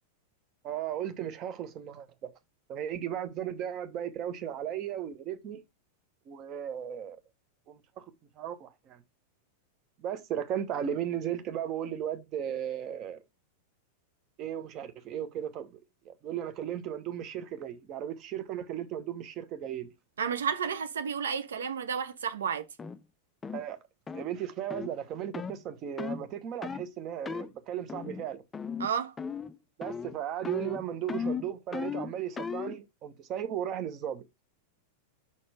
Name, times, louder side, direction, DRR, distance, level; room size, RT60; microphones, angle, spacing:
voice 1, 0.6-2.3 2.7-5.6 6.3-7.2 7.7-8.0 8.4-9.0 10.0-13.2 14.4-15.8 16.0-19.9 23.5-23.8 24.1-28.4 29.8-34.2, right 10 dB, 35° right, 1.1 m, -36 dB
voice 2, 20.2-22.6 28.8-29.1, right 7 dB, 65° right, 0.8 m, -31 dB
sound 1, 22.8-23.0 23.4-23.6 24.1-24.3 24.7-24.9 25.3-25.6 26.0-26.2 26.6-26.9 27.2-27.5 27.9-28.2 28.5-28.9 29.2-29.5 29.8-30.2 30.4-32.8, left 5 dB, 15° left, 0.4 m, -36 dB
5.6 x 4.3 x 4.8 m
figure-of-eight pair, 90°, 0 cm